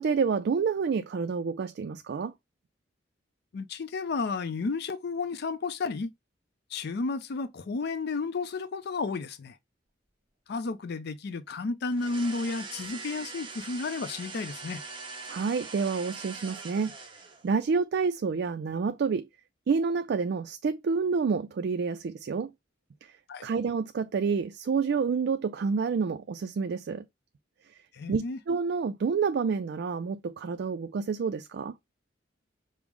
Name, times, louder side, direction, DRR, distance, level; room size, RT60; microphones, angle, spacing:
voice 1, 0.0-2.3 15.3-16.9 17.4-19.3 19.7-22.5 23.0-23.1 23.4-27.1 28.1-31.7, right 5 dB, 60° right, 0.3 m, -28 dB
voice 2, 3.5-6.1 6.7-9.6 10.5-14.8 23.3-23.5 27.9-28.4, left 4 dB, 60° left, 0.4 m, -32 dB
sound 1, 11.9-17.5, right 4 dB, 25° right, 0.9 m, -42 dB
5.3 x 2.0 x 4.6 m
head